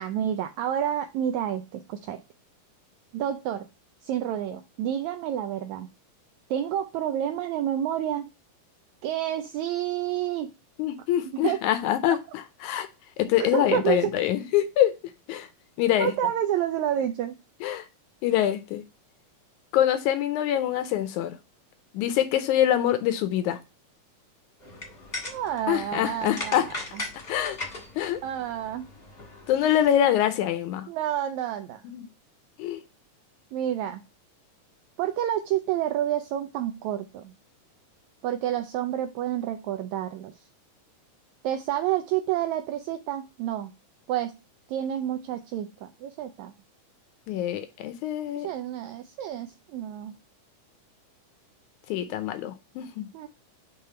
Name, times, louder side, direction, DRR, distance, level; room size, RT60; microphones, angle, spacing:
voice 1, 0.0-2.2 3.1-3.7 4.0-5.9 6.5-8.3 9.0-10.5 11.4-11.6 12.1-12.2 13.4-14.1 16.0-17.4 25.2-27.0 28.2-28.9 30.9-31.8 33.5-34.0 35.0-37.3 38.2-40.3 41.4-43.7 44.1-44.4 44.7-46.5 48.4-50.1 53.1-53.3, right 11 dB, 80° right, 1.7 m, -29 dB
voice 2, 10.8-12.9 13.2-14.9 15.3-15.5 15.8-16.1 17.6-17.9 18.2-18.8 19.7-21.4 21.9-23.6 25.7-26.7 27.3-27.6 28.0-28.2 29.5-30.9 31.8-32.1 32.6-32.8 47.3-48.5 51.9-53.1, left 11 dB, 75° left, 1.9 m, -25 dB
sound 1, 24.6-30.0, left 2 dB, 30° left, 1.2 m, -39 dB
6.7 x 3.5 x 4.3 m
omnidirectional pair, 3.8 m